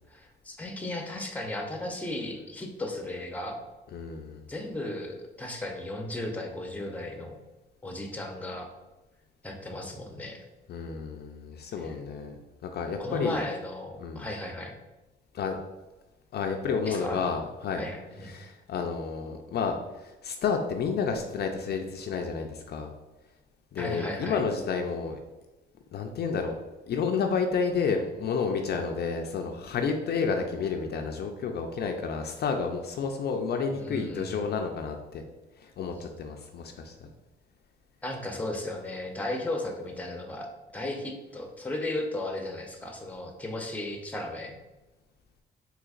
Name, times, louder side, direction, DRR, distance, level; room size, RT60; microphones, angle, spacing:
voice 1, 0.1-3.6 4.5-7.4 7.8-8.7 9.4-10.4 11.8-11.9 13.0-14.7 16.9-17.2 17.8-18.3 23.8-24.4 33.7-34.5 38.0-44.5, left 1 dB, 5° left, 2 dB, 0.6 m, -35 dB
voice 2, 3.9-4.4 10.7-12.4 12.6-13.4 14.0-14.3 15.3-15.6 16.3-17.8 18.2-22.9 23.7-25.2 25.9-26.6 26.9-35.2 35.6-36.9, left 5 dB, 55° left, 4 dB, 0.4 m, -30 dB
3.9 x 2.8 x 2.4 m, 1.1 s
cardioid pair, 90°, 20 cm